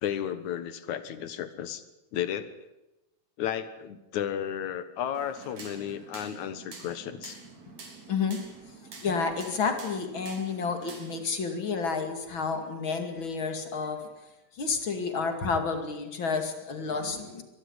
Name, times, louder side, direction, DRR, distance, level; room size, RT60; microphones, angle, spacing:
voice 1, 0.0-1.8 2.1-2.5 3.4-7.4, left 10 dB, 75° left, 12 dB, 2.8 m, -33 dB
sound 1, 5.1-11.2, right 4 dB, 65° right, 4.9 m, -47 dB
voice 2, 8.1-8.4 9.0-14.1 14.6-17.4, left 5 dB, 45° left, 6 dB, 2.9 m, -30 dB
23.0 x 14.0 x 10.0 m, 0.99 s
omnidirectional pair, 3.4 m